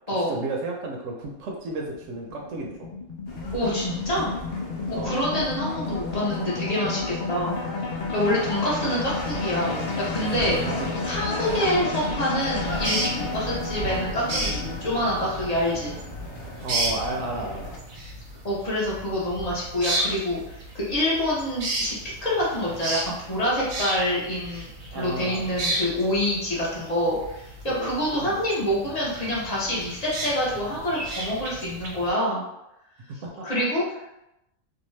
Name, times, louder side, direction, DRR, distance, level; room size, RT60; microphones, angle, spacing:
voice 1, 0.3-2.9 4.9-5.2 10.7-11.0 16.6-17.8 24.9-25.5 27.7-27.9 28.2-28.4 33.1-33.5, right 2 dB, 70° right, 0 dB, 0.9 m, -32 dB
sound 1, 1.2-17.6, left 4 dB, 85° left, 0.4 m, -33 dB
sound 2, 3.3-17.8, left 1 dB, 65° left, 0.8 m, -36 dB
voice 2, 3.5-4.3 5.0-7.6 8.1-10.6 11.1-15.9 18.4-21.9 22.2-24.7 24.9-32.4 33.4-34.1, left 1 dB, 40° left, -6 dB, 0.7 m, -26 dB
sound 3, 12.7-32.1, right 2 dB, 90° right, 1.1 m, -34 dB
2.7 x 2.2 x 3.1 m, 0.88 s
omnidirectional pair, 1.4 m